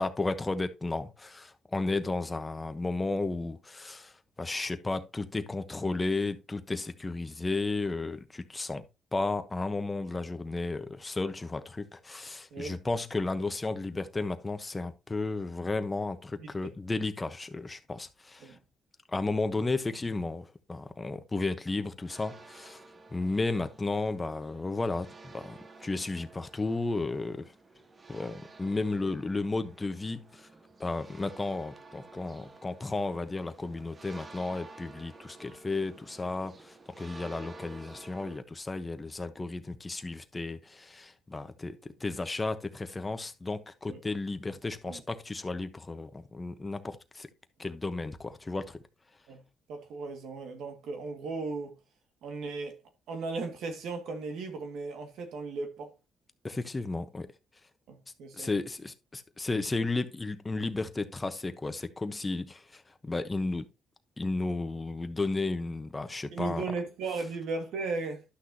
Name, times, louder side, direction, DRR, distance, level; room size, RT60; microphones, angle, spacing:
voice 1, 0.0-8.8 9.1-18.5 19.1-22.8 23.1-27.5 28.1-30.5 30.8-47.3 47.6-48.8 56.4-57.3 58.3-63.7 64.2-66.6, left 3 dB, 20° left, 1.1 m, -33 dB
voice 2, 16.4-16.8 18.4-18.6 29.0-29.1 43.9-44.0 44.8-45.0 49.3-49.4 49.7-51.8 52.2-52.8 53.1-55.9 57.9-58.5 66.3-68.2, right 4 dB, 80° right, 2.1 m, -36 dB
sound 1, 22.1-38.4, right 3 dB, 30° right, 1.0 m, -52 dB
11.5 x 6.2 x 2.9 m
cardioid pair, 90°, 0 cm